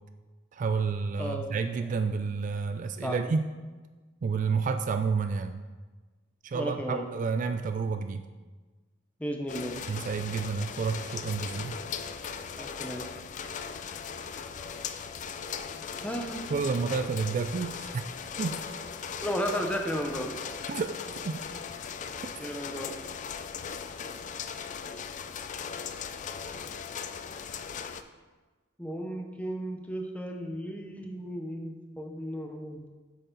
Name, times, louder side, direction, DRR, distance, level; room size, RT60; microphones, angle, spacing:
voice 1, 0.5-3.5 4.2-5.6 6.4-8.2 9.9-11.8 16.5-18.0 18.4-18.6 20.7-21.0 21.2-21.4, right 5 dB, 40° right, 8 dB, 0.3 m, -30 dB
voice 2, 1.2-1.5 3.0-3.2 6.5-7.1 9.2-9.8 12.6-13.1 16.0-16.5 19.2-20.3 22.4-22.9 28.8-32.8, equal, 5° left, 3 dB, 0.8 m, -34 dB
sound 1, 9.5-28.0, left 6 dB, 40° left, 0.4 m, -38 dB
8.2 x 6.6 x 3.9 m, 1.3 s
head